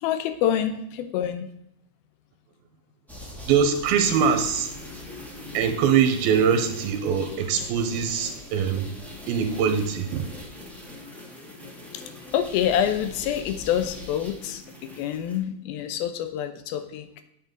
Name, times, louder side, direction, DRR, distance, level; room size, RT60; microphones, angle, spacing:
voice 1, 0.0-1.5 11.9-12.0 12.3-17.2, left 10 dB, 85° left, 10 dB, 2.6 m, -27 dB
sound 1, 3.1-15.4, left 1 dB, ahead, 0.3 m, -42 dB
voice 2, 3.5-4.7 5.1-5.2 5.5-8.9 9.3-10.3, right 7 dB, 90° right, 5 dB, 2.8 m, -23 dB
9.3 x 7.3 x 3.8 m, 0.80 s
omnidirectional pair, 4.3 m